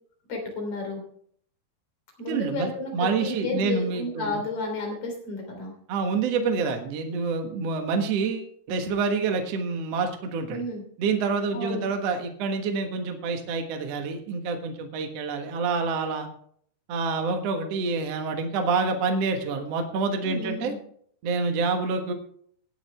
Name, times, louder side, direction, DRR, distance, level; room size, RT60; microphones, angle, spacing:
voice 1, 0.3-1.0 2.2-5.7 10.5-10.8 11.5-11.9 20.2-20.8, left 2 dB, 40° left, 1 dB, 4.0 m, -32 dB
voice 2, 2.2-4.4 5.9-10.6 11.0-16.3 16.9-20.7 21.2-22.1, right 4 dB, 60° right, 5 dB, 1.7 m, -27 dB
18.0 x 9.4 x 3.4 m, 0.62 s
omnidirectional pair, 4.9 m